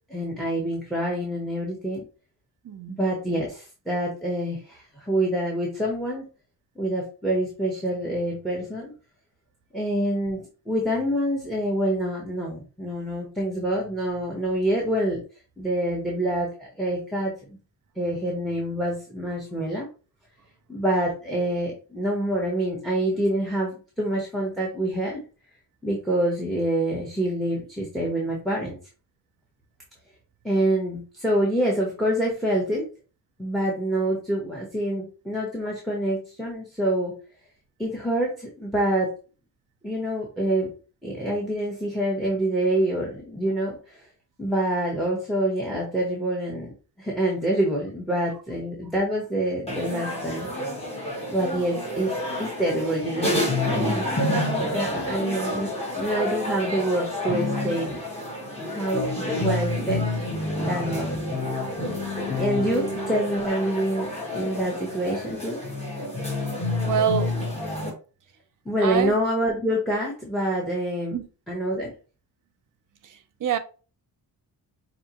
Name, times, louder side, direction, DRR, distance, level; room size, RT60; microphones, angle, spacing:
voice 1, 0.1-2.0 3.0-6.2 6.8-8.9 9.7-15.2 15.6-17.6 18.0-19.9 20.7-25.2 25.8-28.8 30.4-32.8 33.4-37.2 37.8-39.2 39.8-40.7 41.0-44.1 44.4-46.7 47.0-50.5 51.3-52.1 52.4-53.4 53.9-54.1 54.6-58.0 58.7-60.1 60.5-61.3 62.3-65.6 68.6-71.2 71.5-71.9, right 1 dB, ahead, 1.0 m, -26 dB
voice 2, 2.6-3.0 66.8-67.5 68.8-69.2 71.1-71.3 73.0-73.6, right 8 dB, 50° right, 0.6 m, -26 dB
sound 1, 49.7-67.9, left 1 dB, 15° left, 1.5 m, -28 dB
5.4 x 2.7 x 2.9 m
wide cardioid pair, 160°, 39 cm